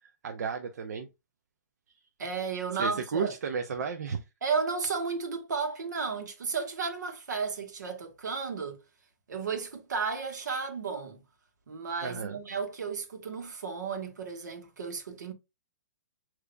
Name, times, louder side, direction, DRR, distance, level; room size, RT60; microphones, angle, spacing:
voice 1, 0.2-1.1 2.8-4.2 12.0-12.4, right 6 dB, 70° right, 0.7 m, -33 dB
voice 2, 2.2-3.3 4.4-8.8 9.3-11.2 11.7-15.3, right 5 dB, 85° right, 1.6 m, -33 dB
6.9 x 3.0 x 2.3 m
hypercardioid pair, 155°, 9 cm